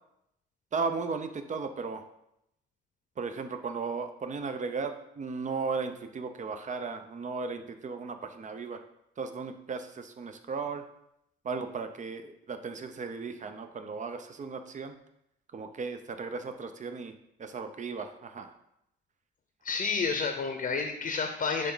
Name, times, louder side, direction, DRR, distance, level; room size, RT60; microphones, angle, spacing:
voice 1, 0.7-2.0 3.2-8.8 9.2-10.8 11.4-15.0 15.5-17.1 17.4-18.5, right 4 dB, 40° right, 8 dB, 0.7 m, -36 dB
voice 2, 19.6-21.7, left 5 dB, 45° left, 5 dB, 0.8 m, -30 dB
10.0 x 3.5 x 3.9 m, 0.81 s
cardioid pair, 90°, 20 cm